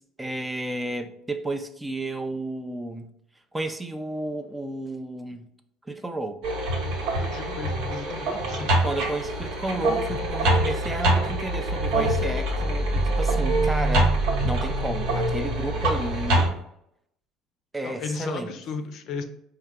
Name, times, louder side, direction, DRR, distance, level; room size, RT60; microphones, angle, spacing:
voice 1, 0.0-3.1 3.5-5.5 5.9-6.4 8.8-14.1 14.4-16.6 17.7-18.5, right 2 dB, 10° right, 0.4 m, -32 dB
sound 1, 6.4-16.5, right 1 dB, 75° right, 1.1 m, -24 dB
voice 2, 7.2-8.7 17.8-19.2, left 4 dB, 60° left, 0.5 m, -34 dB
4.6 x 2.2 x 3.5 m
cardioid pair, 110°, 0 cm